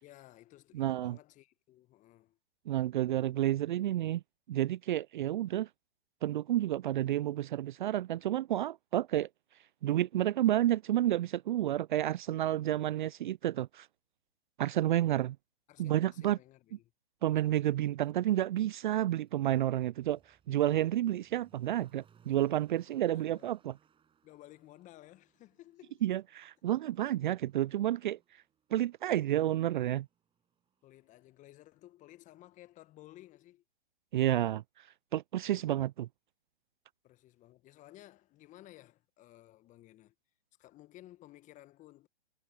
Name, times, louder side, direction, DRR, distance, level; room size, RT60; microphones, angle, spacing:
voice 1, 0.0-2.4 15.7-16.9 22.9-23.5 24.2-26.0 30.8-33.6 37.0-40.1 40.6-42.1, left 15 dB, 25° left, 1.6 m, -56 dB
voice 2, 0.7-1.2 2.7-4.2 4.5-5.7 6.2-9.3 9.8-13.9 14.6-15.4 15.8-16.4 17.2-20.2 20.5-23.8 26.0-28.2 28.7-30.1 34.1-34.6 35.1-36.1, right 13 dB, 50° right, 0.4 m, -30 dB
Motor vehicle (road), 18.0-18.2 18.9-31.8 32.1-32.2, right 8 dB, 15° right, 7.9 m, -69 dB
figure-of-eight pair, 120°, 31 cm